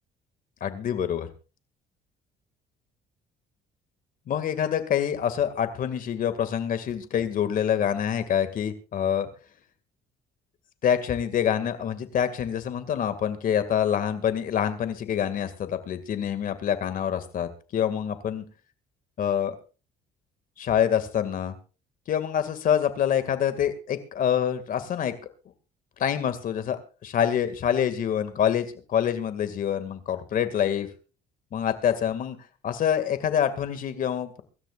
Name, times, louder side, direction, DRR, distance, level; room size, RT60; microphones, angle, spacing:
voice 1, 0.6-1.3 4.3-9.3 10.8-18.4 19.2-19.6 20.6-21.6 22.1-25.1 26.0-30.9 31.5-32.4 32.6-34.4, left 9 dB, 55° left, 10 dB, 2.1 m, -26 dB
24.5 x 13.5 x 2.5 m, 0.34 s
cardioid pair, 110°, 17 cm